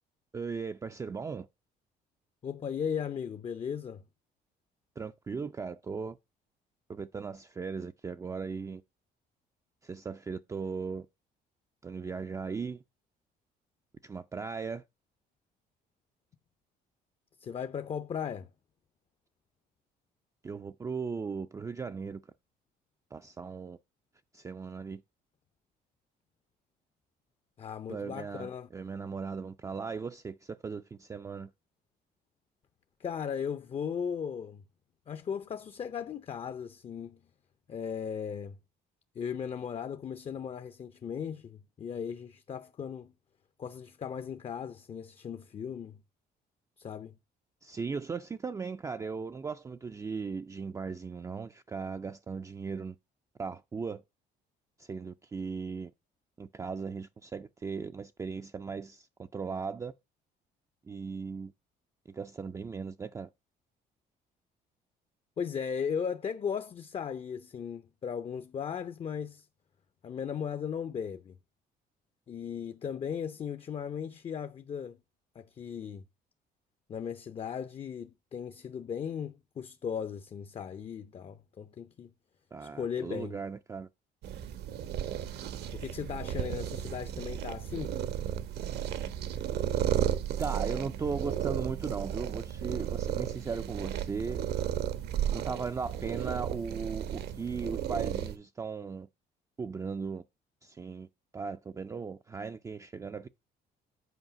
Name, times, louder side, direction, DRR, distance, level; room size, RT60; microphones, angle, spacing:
voice 1, 0.3-1.5 5.0-6.2 6.9-8.8 9.8-11.1 11.8-12.8 14.0-14.8 20.4-22.2 23.1-23.8 24.3-25.0 27.9-31.5 47.6-53.0 53.4-54.0 54.8-55.9 56.4-59.9 60.9-61.5 62.1-63.3 82.5-83.9 90.4-94.4 95.3-99.1 99.6-100.2 100.6-101.1 101.3-103.3, right 5 dB, 20° right, 0.4 m, -37 dB
voice 2, 2.4-4.0 17.4-18.5 27.6-28.7 33.0-34.6 35.1-37.2 37.7-38.6 39.1-43.1 43.6-46.0 46.8-47.2 65.4-69.5 70.0-71.4 72.3-75.0 75.3-76.0 76.9-82.1 82.6-83.4 85.7-88.0, left 7 dB, 35° left, 0.6 m, -37 dB
sound 1, 84.2-98.4, right 10 dB, 75° right, 1.0 m, -34 dB
8.1 x 4.8 x 5.7 m
cardioid pair, 110°, 17 cm